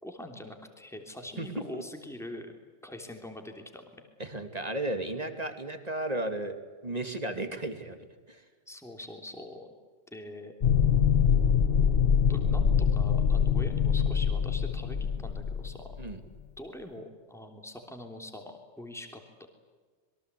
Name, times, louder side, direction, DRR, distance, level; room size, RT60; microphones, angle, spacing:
voice 1, 0.0-2.5 2.8-4.1 8.7-9.7 10.1-10.5 12.2-16.0 16.6-19.5, left 1 dB, ahead, 4 dB, 3.2 m, -43 dB
voice 2, 4.2-6.6 6.8-8.0 8.3-8.4 16.0-16.2, right 1 dB, 35° right, 7 dB, 2.7 m, -34 dB
sound 1, 10.6-16.1, left 7 dB, 60° left, 1.3 m, -24 dB
26.5 x 23.0 x 8.4 m, 1.5 s
omnidirectional pair, 1.2 m